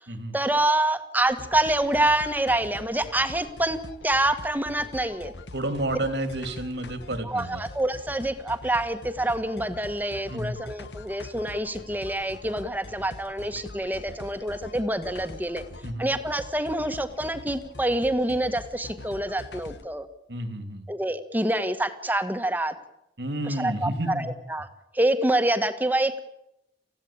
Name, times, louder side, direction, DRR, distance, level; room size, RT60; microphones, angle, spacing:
voice 1, 0.3-3.8 4.0-5.3 7.2-15.6 16.0-20.1 20.9-22.7 23.5-24.7 24.9-26.2, right 1 dB, 10° right, 8 dB, 1.6 m, -26 dB
sound 1, 1.3-19.9, left 2 dB, 85° left, 1.5 m, -43 dB
voice 2, 5.5-7.6 10.3-10.5 15.8-16.0 20.3-20.9 23.2-24.3, right 1 dB, 80° right, 9 dB, 3.0 m, -30 dB
29.0 x 16.0 x 8.8 m, 0.85 s
head